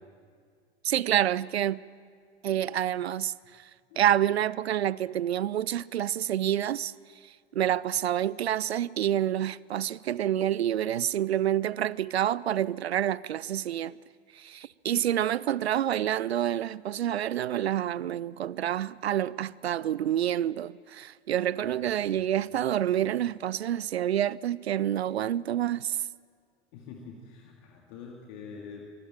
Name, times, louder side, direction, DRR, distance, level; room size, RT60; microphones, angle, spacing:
voice 1, 0.8-1.8 2.4-3.7 4.0-6.9 7.2-14.0 14.3-26.1, right 11 dB, 70° right, 0.5 m, -28 dB
voice 2, 21.6-22.2 22.5-23.1 26.7-28.9, left 5 dB, 45° left, 2.3 m, -46 dB
24.5 x 12.5 x 8.9 m
figure-of-eight pair, 85°, 33 cm